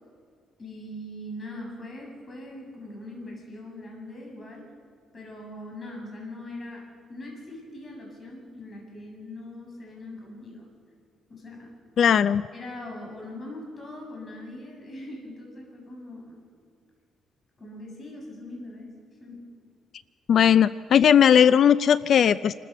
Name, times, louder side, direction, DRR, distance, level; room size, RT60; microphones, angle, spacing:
voice 1, 0.6-4.6 5.1-10.7 11.3-11.7 12.5-16.4 17.6-18.9 19.2-19.4, left 1 dB, 40° left, 0 dB, 7.5 m, -41 dB
voice 2, 12.0-12.4 20.3-22.5, left 8 dB, 60° left, 16 dB, 0.4 m, -18 dB
28.0 x 14.5 x 6.9 m, 2.2 s
cardioid pair, 90°, 0 cm